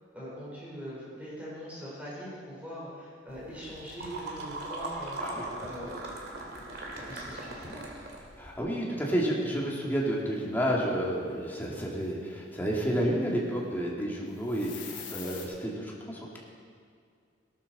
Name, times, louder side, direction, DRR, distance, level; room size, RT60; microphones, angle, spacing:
voice 1, 0.1-6.0 7.0-7.9, equal, 10° right, -7 dB, 4.4 m, -42 dB
sound 1, 3.3-8.6, right 2 dB, 60° right, 2.4 m, -40 dB
voice 2, 8.4-16.4, equal, 10° left, -4 dB, 2.5 m, -30 dB
sound 2, 14.4-15.4, left 7 dB, 85° left, 3.2 m, -42 dB
18.0 x 12.5 x 4.3 m, 2.2 s
head